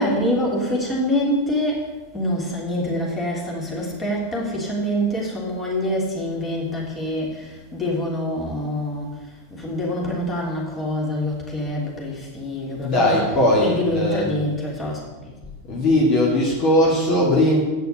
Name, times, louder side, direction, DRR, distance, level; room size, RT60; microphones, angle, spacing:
voice 1, 0.0-1.9 2.1-9.1 9.5-15.3, left 1 dB, 20° left, -3 dB, 3.2 m, -25 dB
voice 2, 12.8-14.3 15.7-17.6, left 1 dB, 35° left, -4 dB, 2.6 m, -19 dB
8.7 x 6.7 x 8.2 m, 1.2 s
figure-of-eight pair, 90°, 0 cm